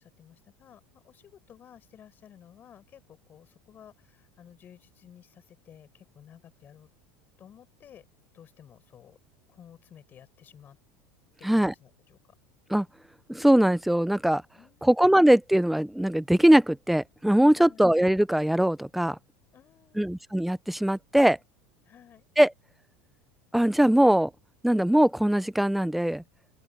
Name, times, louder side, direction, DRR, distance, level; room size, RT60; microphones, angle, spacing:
voice 1, 0.0-6.9 7.4-8.0 8.3-9.2 9.5-10.8 11.4-12.2 14.6-15.2 17.5-17.9 19.5-20.2 21.8-22.3, left 9 dB, 35° left, 5.9 m, -54 dB
voice 2, 11.4-11.7 12.7-12.9 13.3-14.4 14.8-19.2 20.0-21.4 22.4-22.5 23.5-24.3 24.6-26.2, right 1 dB, ahead, 0.5 m, -21 dB
open air
supercardioid pair, 125°, 6 cm